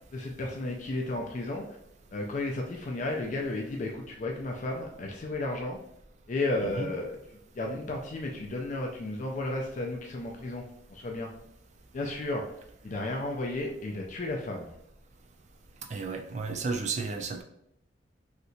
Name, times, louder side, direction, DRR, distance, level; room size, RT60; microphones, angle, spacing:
voice 1, 0.1-1.6 2.1-5.8 6.3-7.1 7.6-11.3 11.9-12.4 12.8-14.7, left 2 dB, 45° left, 1 dB, 0.4 m, -33 dB
voice 2, 15.9-17.4, right 4 dB, 40° right, 3 dB, 0.4 m, -32 dB
3.2 x 2.8 x 2.7 m, 0.76 s
head